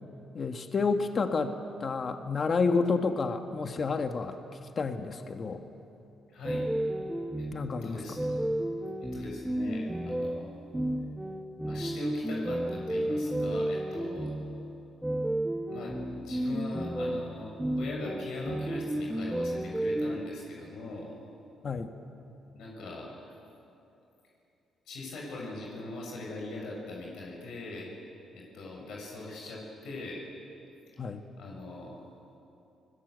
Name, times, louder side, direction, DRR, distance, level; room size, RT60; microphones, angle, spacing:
voice 1, 0.3-4.4 4.8-5.6 7.5-8.0 21.6-21.9 31.0-31.2, left 4 dB, 45° left, 6 dB, 1.5 m, -30 dB
voice 2, 6.3-6.7 7.4-7.5 7.8-8.2 9.0-10.5 11.6-14.4 15.7-21.1 22.5-23.1 24.8-27.9 28.3-30.2 31.4-32.0, left 2 dB, 80° left, -2 dB, 6.4 m, -41 dB
sound 1, 6.4-20.2, right 1 dB, 10° right, 1.2 m, -32 dB
29.5 x 20.5 x 8.2 m, 2.8 s
cardioid pair, 90°, 0 cm